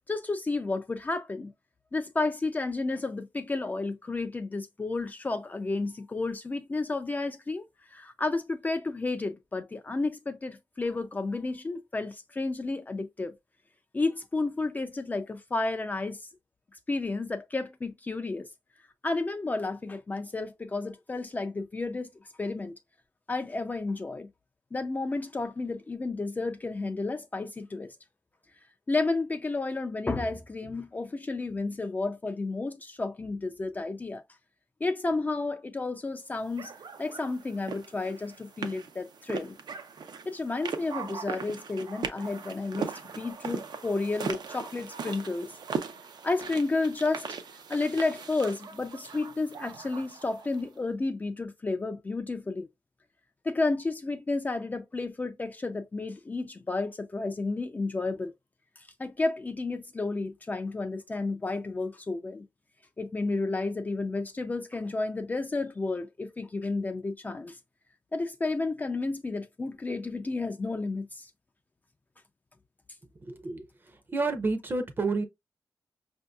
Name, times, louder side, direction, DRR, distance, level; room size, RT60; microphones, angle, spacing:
voice 1, 0.0-1.5 1.9-13.3 13.9-16.3 16.9-18.5 19.0-22.1 22.4-22.7 23.3-24.3 24.7-27.9 28.9-34.2 34.8-36.7 37.0-39.6 40.3-45.6 46.2-47.3 47.7-52.7 53.4-58.3 58.8-62.5 63.0-67.6 68.1-71.3, left 3 dB, 25° left, 0.3 m, -31 dB
sound 1, 36.6-50.6, right 5 dB, 80° right, 0.6 m, -39 dB
voice 2, 73.3-73.7 74.1-75.2, right 3 dB, 30° right, 0.6 m, -29 dB
5.4 x 2.6 x 2.2 m
wide cardioid pair, 170°, 7 cm